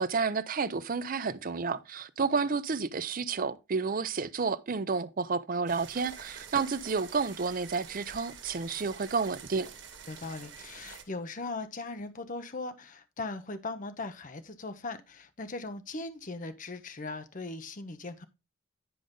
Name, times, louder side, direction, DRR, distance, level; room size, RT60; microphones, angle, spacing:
voice 1, 0.0-9.7, right 4 dB, 45° right, 0.6 m, -31 dB
sound 1, 5.7-11.0, right 6 dB, 65° right, 1.7 m, -47 dB
voice 2, 10.1-18.2, left 3 dB, 45° left, 0.9 m, -39 dB
10.5 x 5.1 x 3.8 m
head